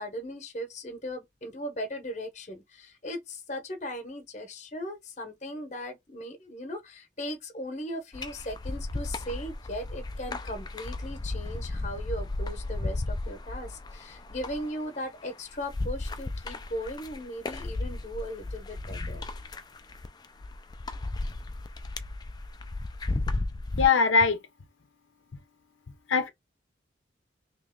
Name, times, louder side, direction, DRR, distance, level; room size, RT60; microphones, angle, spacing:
voice 1, 0.0-19.3, equal, 35° left, 0.9 m, -38 dB
sound 1, 8.1-23.9, left 2 dB, 20° left, 0.3 m, -35 dB
voice 2, 23.8-24.4 26.1-26.3, left 5 dB, 80° left, 0.6 m, -21 dB
3.0 x 3.0 x 3.6 m
head